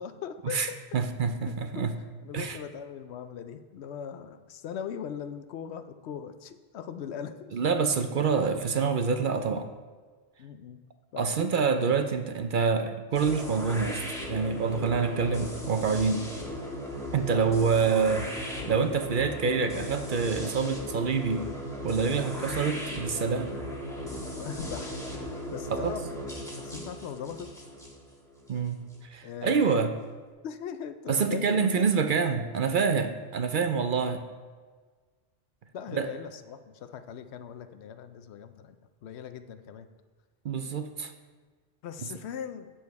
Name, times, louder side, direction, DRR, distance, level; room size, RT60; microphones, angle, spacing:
voice 1, 0.0-0.8 1.4-1.9 2.2-7.6 10.4-10.8 11.1-11.3 17.3-17.5 24.4-27.6 29.2-29.9 30.4-32.0 33.7-33.9 35.7-38.8 39.0-39.9 41.8-42.7, left 8 dB, 80° left, 10 dB, 0.9 m, -40 dB
voice 2, 0.9-1.9 2.3-2.6 7.5-9.7 11.2-14.0 14.3-16.3 17.1-21.5 21.8-23.5 25.7-25.9 28.5-29.9 31.1-34.2 35.9-36.1 40.4-41.1, right 5 dB, 55° right, 8 dB, 0.7 m, -27 dB
sound 1, 13.1-29.0, equal, 5° left, 1.5 m, -37 dB
9.0 x 7.1 x 4.7 m, 1.4 s
omnidirectional pair, 1.1 m